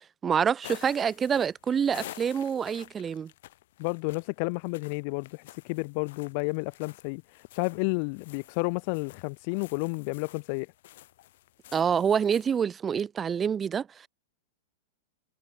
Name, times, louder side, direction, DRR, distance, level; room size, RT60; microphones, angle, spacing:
voice 1, 0.2-3.3 11.7-14.1, right 7 dB, 20° right, 1.0 m, -27 dB
sound 1, 0.6-12.6, left 15 dB, 65° left, 1.8 m, -50 dB
voice 2, 3.8-10.7, left 33 dB, 50° left, 0.3 m, -31 dB
hypercardioid pair, 135°, 0 cm